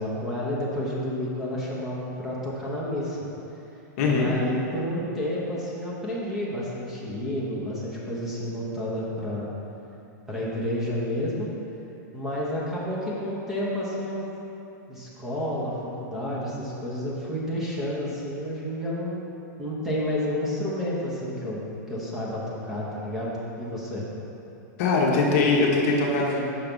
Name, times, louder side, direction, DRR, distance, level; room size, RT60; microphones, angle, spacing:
voice 1, 0.0-3.2 4.0-9.5 10.3-11.5 12.1-14.2 14.9-19.2 19.6-24.0, left 1 dB, 5° right, -7 dB, 1.0 m, -30 dB
voice 2, 4.0-4.3 24.8-26.4, left 3 dB, 50° left, -2 dB, 1.0 m, -21 dB
5.9 x 4.7 x 5.3 m, 2.8 s
supercardioid pair, 155°, 10 cm